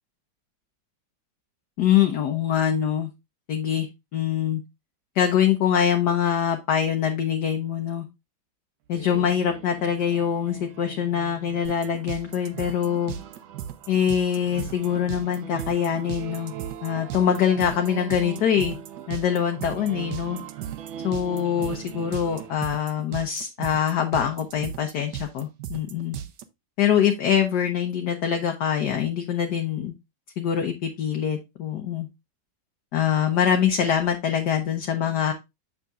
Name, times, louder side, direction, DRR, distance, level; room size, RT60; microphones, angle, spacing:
voice 1, 1.8-3.1 3.5-3.9 4.1-4.6 5.1-8.1 8.9-13.1 13.9-16.5 16.8-18.8 19.1-20.4 21.0-26.2 26.8-29.9 30.4-32.1 32.9-35.3, left 9 dB, 60° left, 4 dB, 1.4 m, -24 dB
sound 1, 8.9-22.5, right 10 dB, 80° right, 1.6 m, -41 dB
sound 2, 11.6-26.4, right 11 dB, 65° right, 1.2 m, -36 dB
7.4 x 6.6 x 2.4 m, 0.22 s
omnidirectional pair, 2.1 m